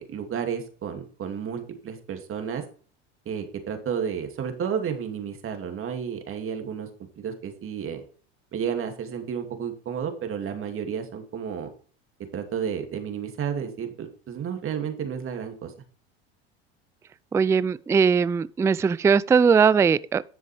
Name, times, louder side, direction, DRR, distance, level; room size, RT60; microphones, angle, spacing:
voice 1, 0.0-2.6 3.3-6.9 7.2-8.0 8.5-11.7 12.3-15.7, right 7 dB, 40° right, 2.5 m, -31 dB
voice 2, 17.3-20.2, right 6 dB, 10° right, 0.3 m, -20 dB
10.5 x 7.3 x 3.4 m
supercardioid pair, 95°, 32 cm